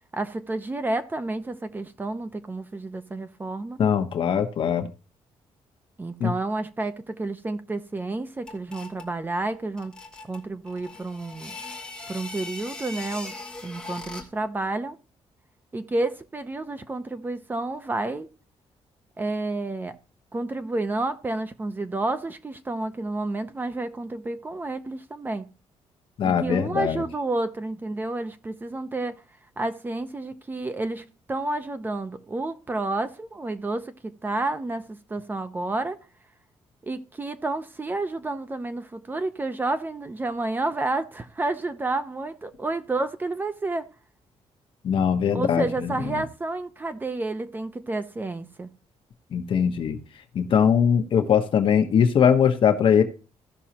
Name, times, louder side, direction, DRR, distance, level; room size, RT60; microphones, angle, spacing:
voice 1, 0.1-3.8 6.0-9.9 10.3-11.6 12.1-13.3 13.6-15.0 15.7-18.3 19.2-20.0 20.3-25.5 26.2-29.2 29.6-36.0 36.8-43.9 45.3-48.7, right 2 dB, 15° right, 0.6 m, -30 dB
voice 2, 3.8-4.9 6.2-6.3 26.2-27.0 44.8-46.2 49.3-50.0 50.3-53.0, left 7 dB, 50° left, 1.0 m, -21 dB
sound 1, 8.5-9.1 9.8-14.4, left 3 dB, 10° left, 1.6 m, -40 dB
16.0 x 6.2 x 2.9 m
cardioid pair, 165°, 11 cm